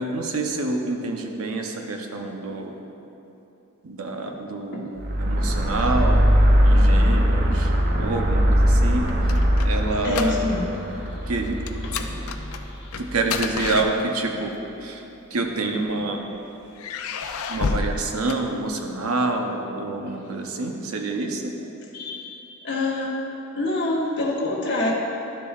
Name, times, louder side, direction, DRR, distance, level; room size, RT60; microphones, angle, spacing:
voice 1, 0.0-2.7 3.8-6.3 6.6-7.7 8.0-9.4 9.6-10.3 11.3-11.6 13.0-15.0 15.3-16.2 17.5-21.5, right 2 dB, 85° right, 3 dB, 0.8 m, -27 dB
sound 1, 5.0-13.3, equal, 45° right, 0.7 m, -20 dB
sound 2, 8.9-10.8 11.0-11.3 11.7-14.5 15.3-16.2 16.8-19.1, left 4 dB, 85° left, 0.5 m, -31 dB
voice 2, 10.0-11.3 11.8-13.0 21.9-23.1 23.5-24.9, left 2 dB, 55° left, -4 dB, 1.2 m, -28 dB
12.0 x 6.9 x 2.4 m, 2.9 s
head